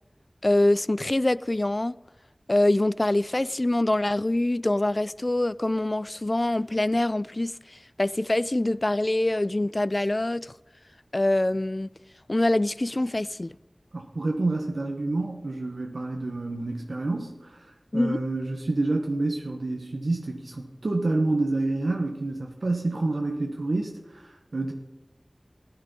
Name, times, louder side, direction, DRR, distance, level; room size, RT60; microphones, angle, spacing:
voice 1, 0.4-1.9 2.5-7.5 8.0-10.5 11.1-11.9 12.3-13.5 17.9-18.2, left 1 dB, 45° left, 0.3 m, -24 dB
voice 2, 13.9-24.7, right 2 dB, 90° right, 1.0 m, -28 dB
14.5 x 10.5 x 5.2 m
wide cardioid pair, 40°, 0 cm